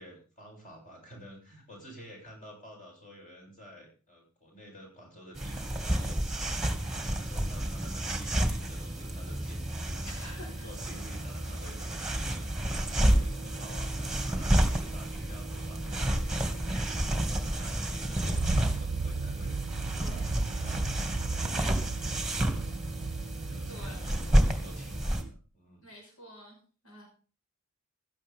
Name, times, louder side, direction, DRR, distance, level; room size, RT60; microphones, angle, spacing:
voice 1, 0.0-19.6 20.0-23.0 23.3-25.8, equal, 40° left, -1 dB, 7.8 m, -51 dB
sound 1, 5.3-25.2, right 1 dB, ahead, 2.3 m, -30 dB
voice 2, 10.0-10.7 20.0-20.5 23.7-24.1 25.8-27.1, left 1 dB, 80° left, 0 dB, 5.6 m, -48 dB
sound 2, 18.2-24.7, right 4 dB, 55° right, 0.6 m, -37 dB
16.0 x 13.0 x 3.8 m, 0.37 s
head